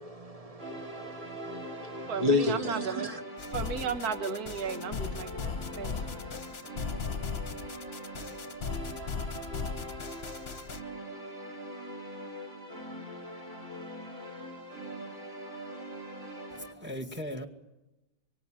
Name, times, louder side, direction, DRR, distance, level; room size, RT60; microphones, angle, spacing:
voice 1, 0.0-3.2, left 2 dB, 25° right, 1.2 m, -32 dB
sound 1, 0.6-16.7, right 1 dB, 40° right, 4.0 m, -42 dB
voice 2, 2.1-3.1 3.5-6.3, right 6 dB, 60° right, 1.9 m, -35 dB
sound 2, 3.4-10.8, left 5 dB, 40° left, 1.3 m, -37 dB
voice 3, 16.5-17.5, equal, 5° right, 2.0 m, -38 dB
24.5 x 24.5 x 9.0 m
omnidirectional pair, 1.9 m